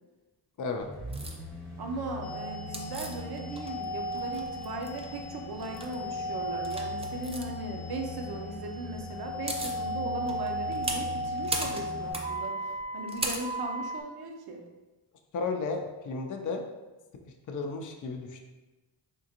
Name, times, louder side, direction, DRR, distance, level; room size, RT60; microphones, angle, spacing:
sound 1, 0.8-12.4 12.8-12.9, left 3 dB, ahead, 0.8 m, -43 dB
sound 2, 1.1-1.4 2.7-3.8 4.1-5.1 5.6-5.9 6.6-7.4 9.0-9.1 9.2-9.8 10.3-14.0, right 2 dB, 15° right, 0.4 m, -35 dB
voice 1, 1.8-14.6, right 2 dB, 55° right, 3 dB, 0.6 m, -38 dB
sound 3, 2.2-12.1, equal, 90° left, 0.5 m, -37 dB
voice 2, 15.3-16.6 17.5-18.4, left 4 dB, 45° left, 3 dB, 0.5 m, -33 dB
3.6 x 2.4 x 2.8 m, 1.2 s
cardioid pair, 65°, 47 cm